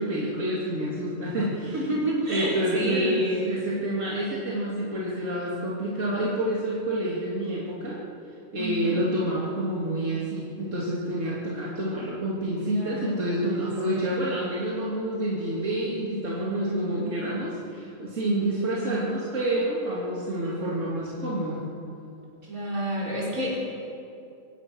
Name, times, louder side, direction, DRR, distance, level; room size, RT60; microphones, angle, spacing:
voice 1, 0.0-1.8 2.3-8.0 8.5-21.6, right 1 dB, 65° right, -6 dB, 3.2 m, -28 dB
voice 2, 1.7-3.5 8.6-9.1 12.7-14.3 16.6-17.1 18.5-18.9 22.4-23.6, right 1 dB, 90° right, -5 dB, 6.3 m, -30 dB
24.0 x 17.5 x 6.3 m, 2.6 s
omnidirectional pair, 1.4 m